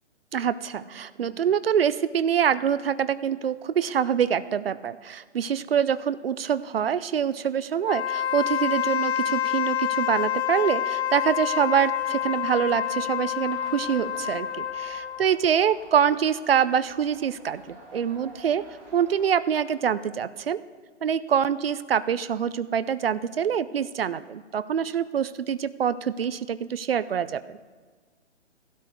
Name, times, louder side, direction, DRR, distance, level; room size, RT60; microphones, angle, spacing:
voice 1, 0.3-18.6 18.9-20.6 21.0-27.6, right 8 dB, 55° right, 16 dB, 0.6 m, -25 dB
Wind instrument woodwind instrument, 7.8-15.3, left 10 dB, 65° left, 0.6 m, -28 dB
sound 1, 11.7-19.3, right 1 dB, 40° right, 4.2 m, -50 dB
15.0 x 12.5 x 4.6 m, 1.5 s
figure-of-eight pair, 135°, 36 cm